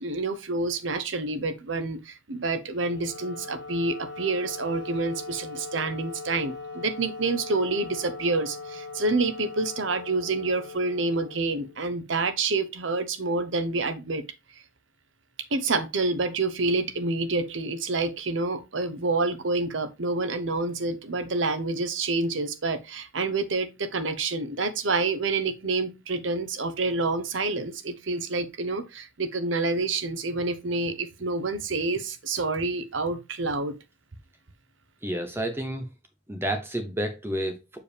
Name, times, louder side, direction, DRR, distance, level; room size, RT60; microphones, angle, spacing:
voice 1, 0.0-14.2 15.5-33.7, right 3 dB, 75° right, 0.9 m, -28 dB
Wind instrument woodwind instrument, 2.7-12.0, left 3 dB, 70° left, 1.4 m, -40 dB
voice 2, 35.0-35.9 36.3-37.8, right 1 dB, 10° right, 0.6 m, -30 dB
6.8 x 4.8 x 3.3 m
head